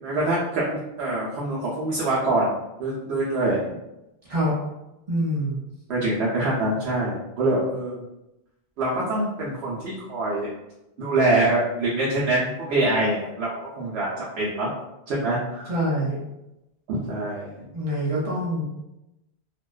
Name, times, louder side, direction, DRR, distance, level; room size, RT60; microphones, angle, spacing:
voice 1, 0.0-3.8 5.9-8.0 8.8-10.5 11.0-14.7 15.1-15.7 16.9-17.5, right 2 dB, 90° right, -6 dB, 0.9 m, -25 dB
voice 2, 5.1-5.6 15.7-16.2 17.7-18.6, equal, 40° right, -5 dB, 0.6 m, -25 dB
2.4 x 2.2 x 2.3 m, 0.93 s
omnidirectional pair, 1.1 m